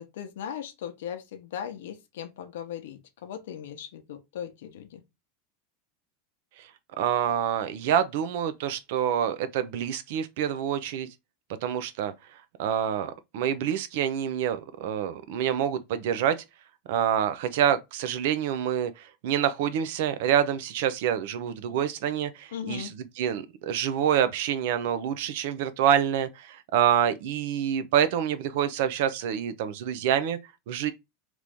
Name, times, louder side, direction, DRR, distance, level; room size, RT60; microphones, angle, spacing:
voice 1, 0.0-5.0 22.5-22.9, left 9 dB, 85° left, 0.7 m, -38 dB
voice 2, 7.0-11.1 11.6-12.1 12.6-16.4 16.9-30.4 30.7-30.9, right 9 dB, 60° right, 0.5 m, -27 dB
3.0 x 2.6 x 3.4 m
supercardioid pair, 160°, 0 cm